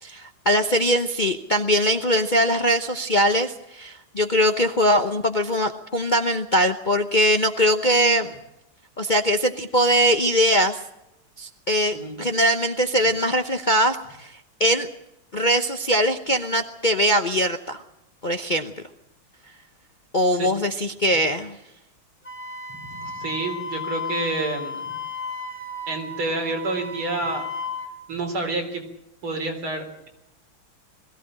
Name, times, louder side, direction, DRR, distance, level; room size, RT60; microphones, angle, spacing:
voice 1, 0.0-8.3 9.0-10.8 11.4-14.9 15.3-17.8 18.2-18.7 20.1-21.6, equal, 40° left, 6 dB, 0.7 m, -21 dB
Wind instrument woodwind instrument, 22.2-27.9, left 3 dB, 5° left, 3.3 m, -34 dB
voice 2, 22.9-24.9 25.9-27.5 28.1-28.8 29.2-30.1, right 2 dB, 90° right, 3 dB, 4.7 m, -28 dB
21.5 x 15.5 x 8.8 m, 0.86 s
omnidirectional pair, 2.2 m